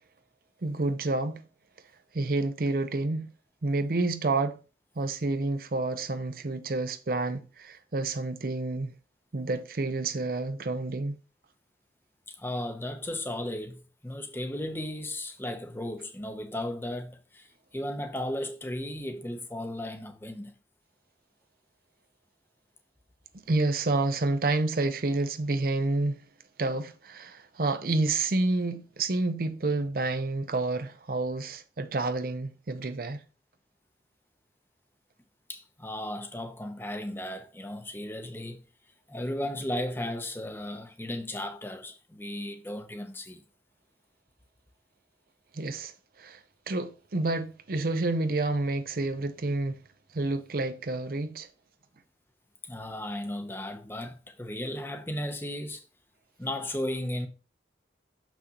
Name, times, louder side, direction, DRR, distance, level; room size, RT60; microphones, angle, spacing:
voice 1, 0.6-1.4 2.1-3.3 3.6-4.6 5.0-8.9 9.3-11.2 23.5-26.2 26.6-33.2 45.5-45.9 46.2-46.4 46.7-49.8 50.1-51.5, right 2 dB, 50° right, 0.6 m, -29 dB
voice 2, 12.3-20.5 35.5-38.6 39.1-43.4 52.6-55.8 56.4-57.3, left 1 dB, 10° left, 0.8 m, -35 dB
6.7 x 6.0 x 2.9 m
head